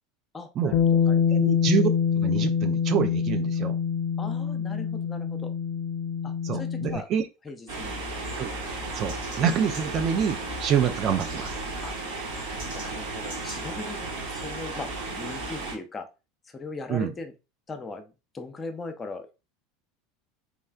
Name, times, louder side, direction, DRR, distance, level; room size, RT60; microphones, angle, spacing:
voice 1, 0.3-1.2 4.2-5.5 6.2-7.1 7.4-8.0 11.8-12.0 12.7-14.0 14.3-16.1 16.5-17.3 17.7-19.3, left 3 dB, 20° left, 0.6 m, -39 dB
Bass guitar, 0.7-7.0, left 7 dB, 55° left, 0.3 m, -25 dB
voice 2, 1.3-1.9 2.2-3.8 6.4-7.2 8.4-8.5 8.9-11.6 16.9-17.1, right 8 dB, 40° right, 0.4 m, -26 dB
sound 1, 7.7-15.7, right 2 dB, 60° right, 1.5 m, -34 dB
3.6 x 3.1 x 2.3 m
figure-of-eight pair, 75°, 0 cm